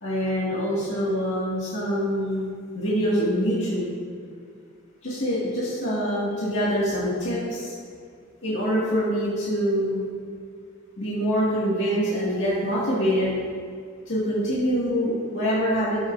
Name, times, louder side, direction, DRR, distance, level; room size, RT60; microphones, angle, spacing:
voice 1, 0.0-2.5 2.7-3.9 5.0-7.7 8.4-10.1 11.0-13.4 14.1-16.0, equal, 65° left, -8 dB, 2.1 m, -25 dB
19.5 x 7.2 x 2.7 m, 2.2 s
head